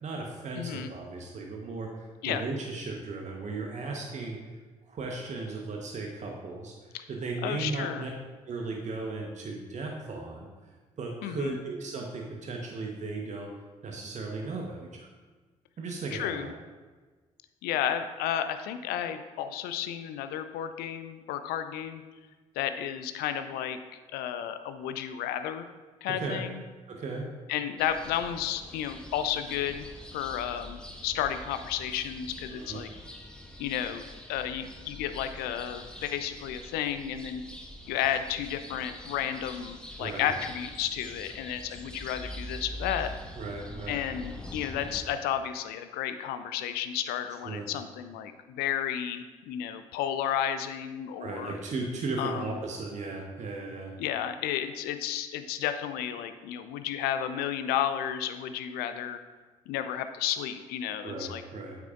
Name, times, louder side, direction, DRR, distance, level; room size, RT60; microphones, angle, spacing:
voice 1, 0.0-4.4 4.9-6.7 7.1-8.1 8.5-10.5 11.0-13.5 13.8-15.1 15.8-16.5 26.1-26.4 26.9-27.3 32.5-32.9 40.0-40.3 43.4-44.0 47.4-47.7 51.2-53.9 61.0-61.8, right 3 dB, 45° right, 1 dB, 1.1 m, -36 dB
voice 2, 0.5-0.9 2.2-2.4 6.9-7.0 7.4-8.1 11.2-11.6 16.1-16.5 17.6-22.0 22.6-23.8 24.1-25.7 26.0-26.6 27.5-32.9 33.6-37.4 37.9-43.1 43.9-51.5 52.2-52.4 54.0-59.2 59.7-61.4, left 10 dB, 65° left, 10 dB, 0.5 m, -32 dB
sound 1, 27.8-45.0, left 1 dB, 5° left, 1.3 m, -44 dB
9.6 x 8.2 x 2.5 m, 1.3 s
figure-of-eight pair, 45°, 17 cm